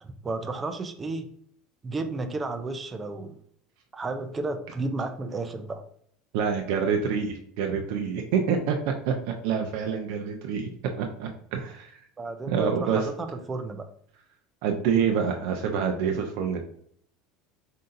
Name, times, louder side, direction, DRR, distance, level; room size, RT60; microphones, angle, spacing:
voice 1, 0.0-1.3 1.8-3.4 3.9-5.8 12.2-13.9, right 3 dB, 15° right, 7 dB, 0.5 m, -32 dB
voice 2, 6.3-9.1 9.4-10.7 11.0-11.9 12.5-13.1 14.6-16.6, right 6 dB, 70° right, 2 dB, 0.6 m, -27 dB
7.5 x 2.8 x 2.6 m, 0.66 s
supercardioid pair, 150°, 0 cm